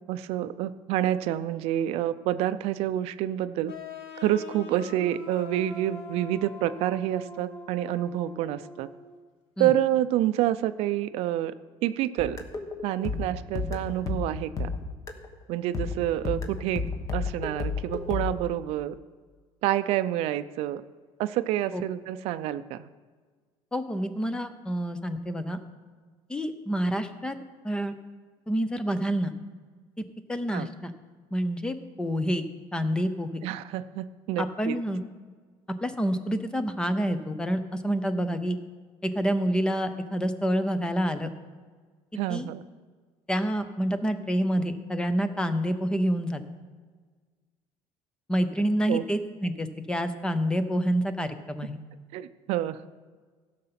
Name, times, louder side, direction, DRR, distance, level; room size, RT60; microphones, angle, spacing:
voice 1, 0.1-3.7 4.2-8.9 9.6-11.5 11.8-12.4 12.8-14.7 15.5-16.8 17.1-18.9 19.6-20.8 21.2-22.9 30.5-30.7 33.4-34.8 42.2-42.6 48.9-49.0 52.1-52.8, right 12 dB, 65° right, 13 dB, 0.5 m, -28 dB
sound 1, 3.7-9.2, left 2 dB, 55° left, 1.4 m, -43 dB
sound 2, 12.2-15.3 15.7-18.4, left 4 dB, 30° left, 1.1 m, -32 dB
voice 2, 23.7-25.6 26.3-27.4 27.6-27.9 28.5-29.3 30.3-30.9 31.3-32.4 32.7-33.4 34.4-35.0 35.8-38.6 39.0-41.3 42.3-42.5 43.3-46.4 48.3-51.8, equal, 10° left, 10 dB, 0.6 m, -28 dB
16.0 x 6.7 x 5.8 m, 1.5 s
cardioid pair, 165°, 11 cm